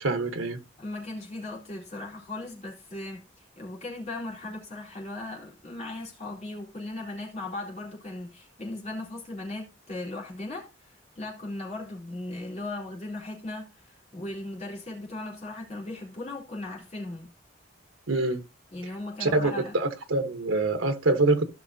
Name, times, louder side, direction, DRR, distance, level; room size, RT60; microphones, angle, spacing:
voice 1, 0.0-0.6 18.1-18.4 19.2-21.4, right 2 dB, 90° right, 1.3 m, -25 dB
voice 2, 0.8-17.3 18.7-19.8, left 2 dB, 35° left, 4.0 m, -38 dB
16.5 x 6.0 x 2.8 m
head